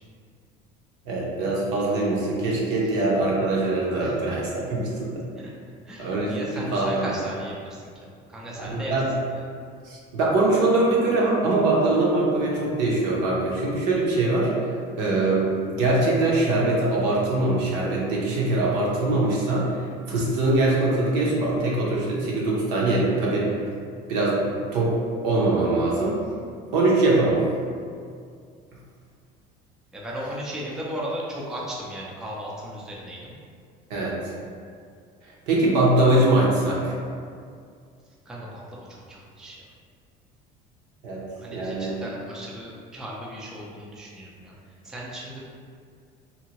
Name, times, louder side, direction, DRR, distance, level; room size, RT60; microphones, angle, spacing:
voice 1, 1.1-5.2 6.0-6.4 6.7-6.9 8.6-9.1 9.8-14.5 15.0-19.7 20.1-23.5 24.1-26.2 26.7-27.4 33.9-34.2 35.5-36.9 41.0-41.2 41.5-41.9, right 2 dB, 75° right, -4 dB, 0.8 m, -22 dB
voice 2, 5.8-9.0 9.3-9.5 29.9-33.3 38.3-39.6 41.4-45.4, equal, 5° right, -5 dB, 0.3 m, -36 dB
2.7 x 2.6 x 2.8 m, 2.2 s
cardioid pair, 150°, 18 cm